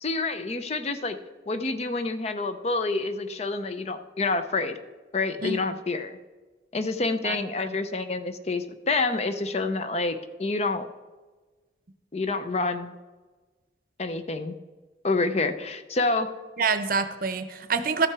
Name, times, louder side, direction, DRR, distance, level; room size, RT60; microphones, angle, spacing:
voice 1, 0.0-1.2 1.5-4.8 5.1-6.2 6.7-10.9 12.1-12.9 14.0-14.5 15.0-16.3, left 3 dB, 35° left, 10 dB, 0.5 m, -28 dB
voice 2, 7.2-7.7 16.6-18.1, right 5 dB, 50° right, 10 dB, 0.7 m, -27 dB
13.0 x 5.9 x 4.7 m, 1.2 s
head